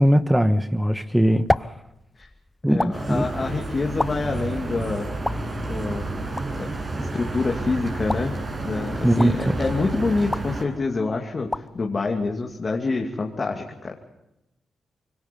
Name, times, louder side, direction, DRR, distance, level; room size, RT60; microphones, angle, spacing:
voice 1, 0.0-1.7 2.6-3.3 9.0-9.5, equal, 5° right, 10 dB, 1.3 m, -20 dB
sound 1, 0.8-13.0, left 1 dB, 15° left, 0.7 m, -34 dB
voice 2, 2.7-6.1 6.6-6.7 7.0-14.0, left 3 dB, 45° left, 1 dB, 2.6 m, -27 dB
sound 2, 2.9-10.6, right 2 dB, 45° right, 7.9 m, -30 dB
26.0 x 23.5 x 5.4 m, 0.89 s
supercardioid pair, 50°, 0 cm